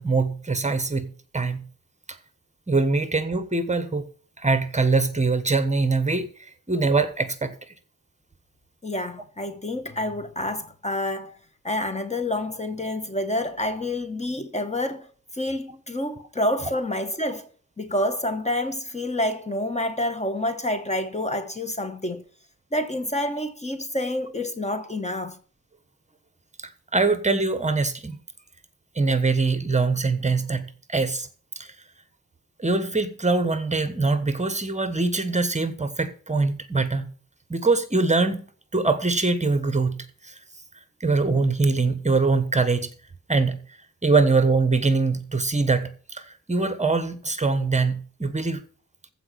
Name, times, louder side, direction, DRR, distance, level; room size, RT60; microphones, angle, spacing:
voice 1, 0.0-1.7 2.1-2.2 2.7-4.1 4.4-7.5 26.6-28.2 28.9-31.3 31.5-31.7 32.6-37.1 37.5-38.4 38.7-40.4 41.0-42.9 43.3-43.6 44.0-48.6, right 3 dB, 25° right, 1.3 m, -23 dB
voice 2, 8.8-11.4 11.6-15.1 15.3-17.5 17.8-22.2 22.7-25.4, left 1 dB, 20° left, 1.2 m, -28 dB
15.0 x 5.1 x 7.6 m
wide cardioid pair, 135°, 30 cm